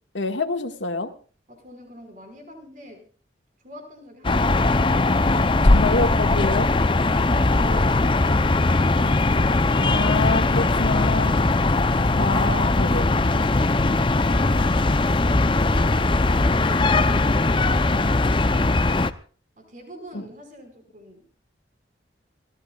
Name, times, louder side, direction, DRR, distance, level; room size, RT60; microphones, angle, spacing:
voice 1, 0.1-1.1 5.3-6.7 7.7-7.8 9.7-11.5 11.9-13.1 20.1-20.3, left 3 dB, 85° left, 6 dB, 1.8 m, -27 dB
voice 2, 1.5-3.1 3.6-5.1 6.2-9.9 14.1-15.1 15.5-18.4 19.6-21.3, equal, 45° right, 4 dB, 5.1 m, -44 dB
sound 1, 4.2-19.1, left 2 dB, 25° left, 0.6 m, -20 dB
sound 2, 8.8-17.0, left 2 dB, 65° left, 1.9 m, -49 dB
29.5 x 14.5 x 2.4 m, 0.41 s
head